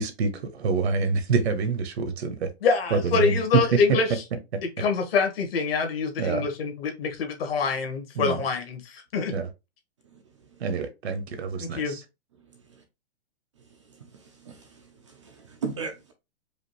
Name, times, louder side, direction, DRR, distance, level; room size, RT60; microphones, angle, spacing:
voice 1, 0.0-2.5 2.9-3.6 6.2-6.5 8.2-8.4 9.3-9.5 10.6-12.0, right 5 dB, 75° right, 1.2 m, -26 dB
voice 2, 2.6-4.2 4.8-9.3 11.6-12.0, left 5 dB, 60° left, 1.6 m, -25 dB
voice 3, 10.0-10.6 12.5-12.8 13.6-16.1, right 5 dB, 30° right, 0.5 m, -39 dB
5.0 x 2.5 x 3.1 m
hypercardioid pair, 170°, 33 cm